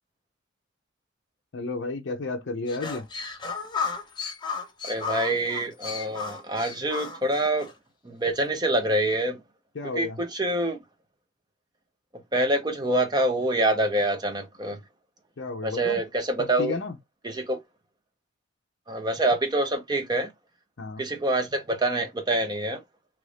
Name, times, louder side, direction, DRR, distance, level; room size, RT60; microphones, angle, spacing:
voice 1, 1.5-3.1 9.7-10.2 15.4-16.0 16.4-16.9 20.8-21.0, left 3 dB, 60° left, 0.5 m, -32 dB
sound 1, 2.7-7.7, left 5 dB, 25° left, 0.7 m, -34 dB
voice 2, 4.8-7.7 8.0-9.4 10.0-10.8 12.3-14.8 15.6-16.7 17.2-17.6 18.9-20.3 21.0-22.8, right 1 dB, 20° right, 0.7 m, -26 dB
3.0 x 2.5 x 3.2 m
head